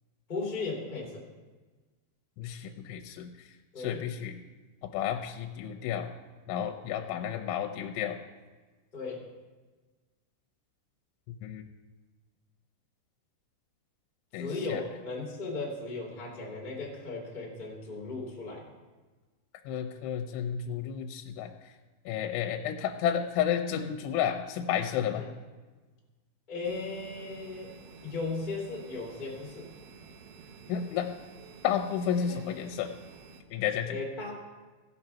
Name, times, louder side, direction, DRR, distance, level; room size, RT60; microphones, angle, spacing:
voice 1, 0.3-1.2 3.7-4.0 8.9-9.2 14.4-18.6 25.1-25.3 26.5-27.7 28.0-29.7 32.2-32.3 33.9-34.3, left 3 dB, 15° left, -4 dB, 1.6 m, -36 dB
voice 2, 2.4-3.3 3.8-4.4 4.9-6.1 6.5-8.2 11.4-11.6 14.3-14.8 19.7-21.5 22.1-25.2 30.7-31.1 31.6-32.9 33.5-34.0, left 9 dB, 80° left, 4 dB, 3.0 m, -31 dB
sound 1, 26.6-33.4, right 5 dB, 80° right, 3.3 m, -50 dB
16.5 x 5.9 x 5.6 m, 1.3 s
omnidirectional pair, 5.7 m